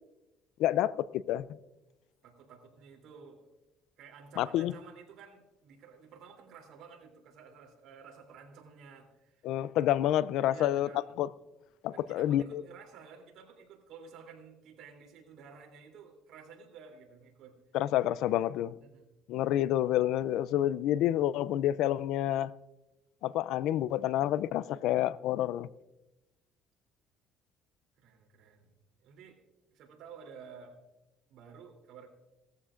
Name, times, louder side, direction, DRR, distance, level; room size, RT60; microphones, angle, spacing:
voice 1, 0.6-1.5 4.4-4.7 9.4-10.9 11.2-11.3 11.8-12.6 17.7-18.7 19.3-22.5 23.2-25.7, left 12 dB, 75° left, 0.4 m, -28 dB
voice 2, 2.2-3.5 4.0-9.4 10.5-11.1 11.9-17.6 18.8-19.1 28.0-28.7 29.0-29.4 29.7-30.8 31.3-32.1, right 6 dB, 70° right, 3.1 m, -52 dB
18.5 x 14.0 x 2.5 m
cardioid pair, 100°, 0 cm